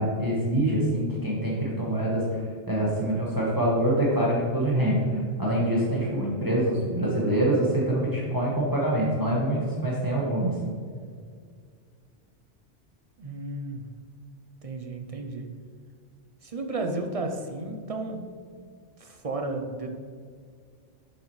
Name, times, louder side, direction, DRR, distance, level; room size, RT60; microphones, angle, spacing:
voice 1, 0.0-2.4 2.7-10.5, right 1 dB, 20° right, -5 dB, 1.3 m, -25 dB
voice 2, 13.2-13.8 14.6-15.5 16.4-18.4 19.0-20.0, right 2 dB, 40° right, 4 dB, 0.6 m, -33 dB
7.4 x 7.2 x 3.1 m, 2.1 s
omnidirectional pair, 1.2 m